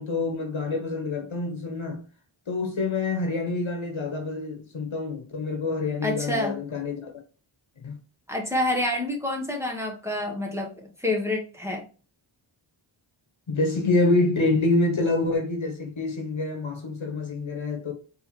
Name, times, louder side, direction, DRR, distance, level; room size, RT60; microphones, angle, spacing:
voice 1, 0.0-2.0 2.5-7.1 7.8-8.0 13.5-17.9, left 2 dB, 70° left, 1.4 m, -26 dB
voice 2, 6.0-6.6 8.3-11.8, left 1 dB, 5° right, 1.3 m, -28 dB
4.4 x 3.3 x 3.1 m
cardioid pair, 50°, 50 cm